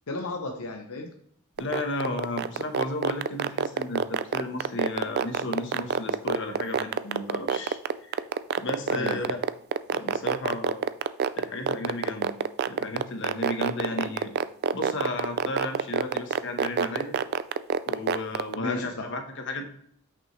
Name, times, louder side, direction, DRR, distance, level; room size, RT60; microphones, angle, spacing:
voice 1, 0.1-1.1 8.9-9.3 13.9-14.1 18.6-19.1, left 2 dB, 80° left, 4 dB, 0.8 m, -34 dB
voice 2, 1.6-7.8 8.1-8.2 8.6-9.4 9.9-10.8 11.4-12.3 12.7-14.3 14.7-17.2 17.9-19.6, left 2 dB, 55° left, 5 dB, 1.1 m, -33 dB
sound 1, 1.6-18.5, right 7 dB, 45° right, 0.3 m, -25 dB
8.4 x 6.1 x 3.2 m, 0.63 s
head